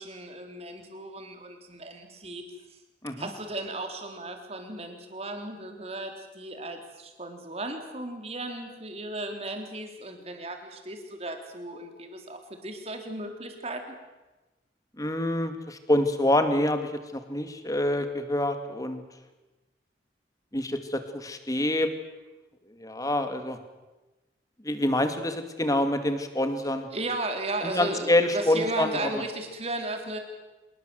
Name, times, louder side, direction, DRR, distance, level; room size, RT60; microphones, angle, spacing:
voice 1, 0.0-2.4 3.2-13.8 26.9-30.2, right 2 dB, 35° right, 5 dB, 3.7 m, -35 dB
voice 2, 15.0-19.0 20.5-21.9 22.8-23.6 24.6-26.9 27.6-29.2, left 1 dB, 20° left, 8 dB, 2.3 m, -26 dB
26.5 x 20.5 x 7.9 m, 1.1 s
head